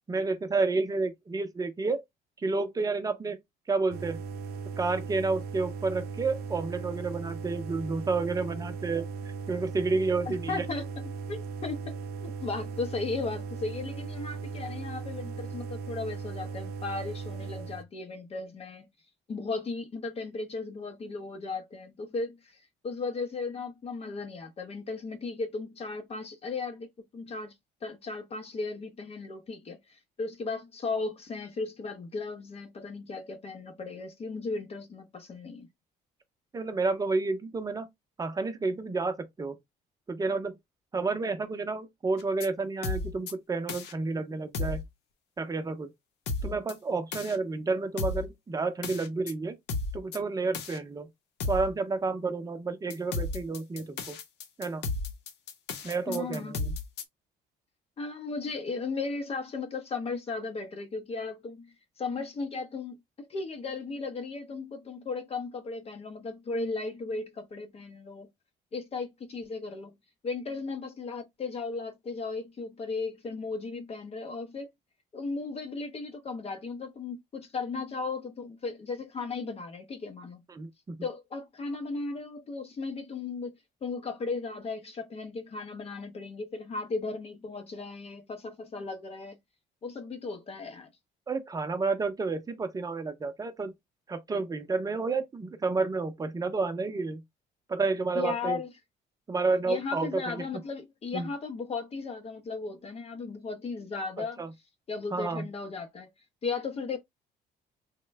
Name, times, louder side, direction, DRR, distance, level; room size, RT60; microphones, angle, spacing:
voice 1, 0.1-2.0 2.4-3.4 3.7-4.2 4.8-9.1 9.5-10.6 36.5-37.9 38.2-39.6 40.1-40.6 40.9-44.8 45.4-45.9 46.4-49.6 49.9-51.1 51.5-54.2 54.6-54.8 55.8-56.7 80.5-81.0 91.3-93.7 94.1-97.2 97.7-98.6 99.3-100.4 101.1-101.3 104.4-104.5 105.1-105.4, right 3 dB, 20° right, 0.6 m, -30 dB
sound 1, 3.9-17.8, right 5 dB, 65° right, 0.5 m, -38 dB
voice 2, 10.3-10.9 11.3-18.9 19.3-26.9 27.1-27.5 27.8-35.7 56.1-56.6 58.0-68.3 68.7-69.9 70.2-74.7 75.1-80.4 81.0-83.5 83.8-89.4 89.8-90.9 98.1-98.7 99.7-104.4 104.9-106.1 106.4-107.0, left 4 dB, 35° left, 0.6 m, -36 dB
sound 2, 42.2-42.5 42.8-43.3 43.7-43.9 44.5-44.9 46.3-46.7 47.1-47.4 48.0-48.3 48.8-49.3 49.7-50.2 50.5-50.8 51.4-51.7 52.9-57.0, left 3 dB, 85° left, 0.7 m, -33 dB
3.0 x 2.1 x 3.1 m
cardioid pair, 110°, 17 cm